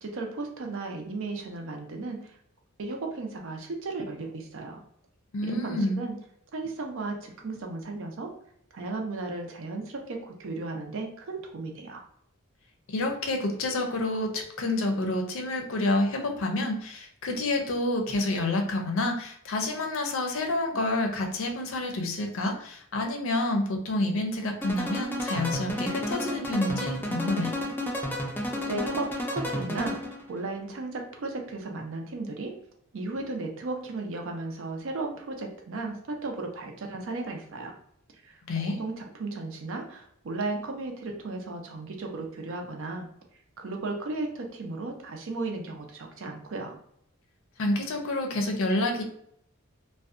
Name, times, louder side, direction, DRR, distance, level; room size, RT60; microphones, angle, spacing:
voice 1, 0.0-2.4 2.8-4.8 5.4-6.1 6.5-8.3 8.7-12.0 28.2-30.0 30.3-32.5 32.9-37.7 38.2-38.4 38.6-43.1 43.6-46.8, right 3 dB, 65° right, 3 dB, 0.5 m, -35 dB
voice 2, 5.3-6.0 12.9-27.5 38.5-38.8 47.6-49.0, left 2 dB, 70° left, 4 dB, 0.5 m, -28 dB
sound 1, 24.6-30.3, left 1 dB, 10° left, 0.4 m, -32 dB
2.6 x 2.1 x 2.4 m, 0.70 s
head